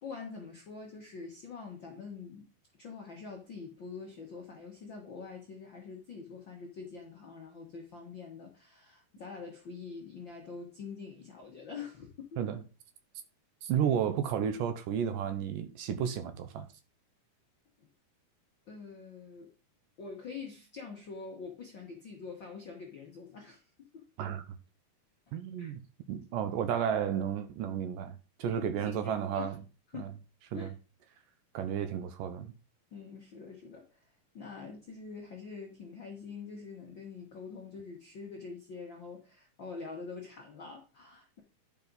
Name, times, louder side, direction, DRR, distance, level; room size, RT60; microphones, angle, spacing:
voice 1, 0.0-2.5 2.8-12.4 17.8-17.9 18.7-19.5 20.0-24.1 25.6-25.7 28.5-29.5 29.9-30.1 30.5-30.7 32.9-41.4, left 5 dB, 65° left, 1.1 m, -45 dB
voice 2, 13.6-16.7 24.2-24.4 25.3-25.8 26.1-29.6 30.0-30.1 30.5-30.7 31.5-32.5, right 8 dB, 75° right, 2.2 m, -32 dB
10.5 x 5.9 x 4.0 m
omnidirectional pair, 4.2 m